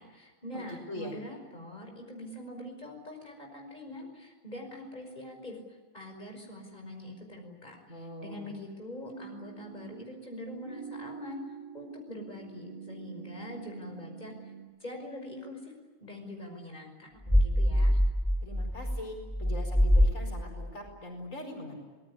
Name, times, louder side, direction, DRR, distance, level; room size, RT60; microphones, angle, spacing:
voice 1, 0.0-14.5 14.8-15.7 16.0-18.0, left 1 dB, 35° left, 2 dB, 5.8 m, -44 dB
voice 2, 0.5-1.1 7.9-8.5 18.4-21.7, left 1 dB, 80° left, 2 dB, 5.2 m, -42 dB
sound 1, 9.1-14.6, right 6 dB, 50° right, 6.2 m, -46 dB
sound 2, 17.3-20.7, equal, ahead, 2.3 m, -25 dB
26.0 x 20.0 x 9.9 m, 1.4 s
omnidirectional pair, 1.3 m